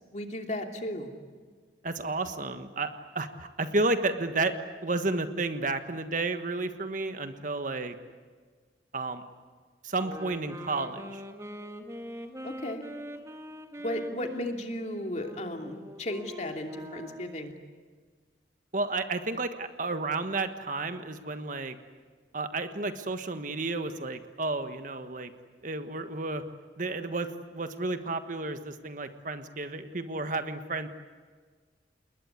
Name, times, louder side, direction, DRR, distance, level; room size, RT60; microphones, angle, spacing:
voice 1, 0.1-1.1 12.4-12.8 13.8-17.5, left 1 dB, 40° left, 4 dB, 2.9 m, -35 dB
voice 2, 1.8-4.6 4.8-7.9 8.9-9.2 9.8-11.2 18.7-21.8 22.3-25.3 25.6-26.4 26.8-30.9, right 3 dB, 45° right, 9 dB, 1.4 m, -32 dB
sound 1, 10.0-17.5, equal, 15° right, 1.9 m, -43 dB
29.5 x 20.5 x 9.7 m, 1.5 s
head